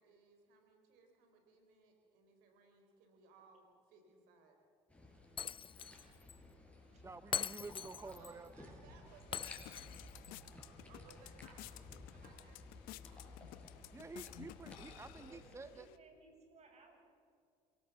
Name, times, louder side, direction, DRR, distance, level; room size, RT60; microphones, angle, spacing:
voice 1, 0.0-4.6 8.0-10.0 10.7-13.3, right 4 dB, 80° right, 4 dB, 3.8 m, -64 dB
sound 1, 4.9-15.6, left 2 dB, 10° left, 6.7 m, -56 dB
Shatter, 5.4-6.0 6.3-6.4 7.3-8.3 9.3-10.3, left 8 dB, 35° left, 0.5 m, -42 dB
voice 2, 7.0-8.7 13.9-15.9, right 3 dB, 20° right, 12 dB, 0.8 m, -50 dB
sound 2, 9.1-16.0, left 15 dB, 75° left, 1.0 m, -55 dB
voice 3, 15.1-17.1, right 2 dB, 50° right, 2 dB, 7.9 m, -62 dB
27.5 x 18.0 x 7.0 m, 2.3 s
supercardioid pair, 75°, 15 cm